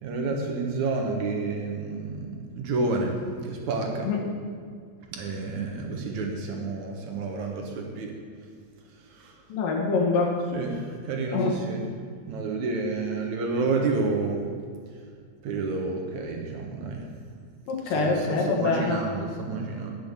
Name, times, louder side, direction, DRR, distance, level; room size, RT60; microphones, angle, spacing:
voice 1, 0.0-4.1 5.1-8.2 9.0-9.4 10.5-11.9 12.3-14.4 15.4-17.1 17.8-19.9, right 3 dB, 65° right, 1 dB, 2.2 m, -30 dB
voice 2, 9.5-10.4 11.3-11.5 17.7-19.1, left 3 dB, 75° left, 0 dB, 3.1 m, -25 dB
10.0 x 7.0 x 7.8 m, 2.1 s
omnidirectional pair, 4.0 m